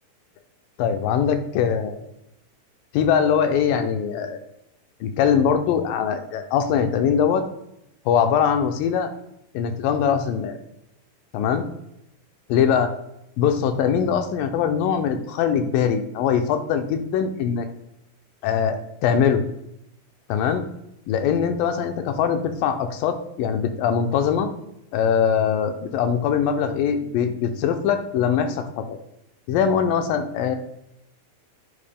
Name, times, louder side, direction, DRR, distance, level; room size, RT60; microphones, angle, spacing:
voice 1, 0.8-2.0 2.9-4.4 5.0-7.5 8.1-9.1 9.5-10.6 11.3-11.7 12.5-12.9 13.4-17.7 18.4-19.4 20.3-20.6 21.1-24.5 24.9-29.0 29.5-30.6, left 7 dB, 80° left, 7 dB, 2.2 m, -22 dB
10.5 x 4.6 x 3.4 m, 0.81 s
omnidirectional pair, 4.2 m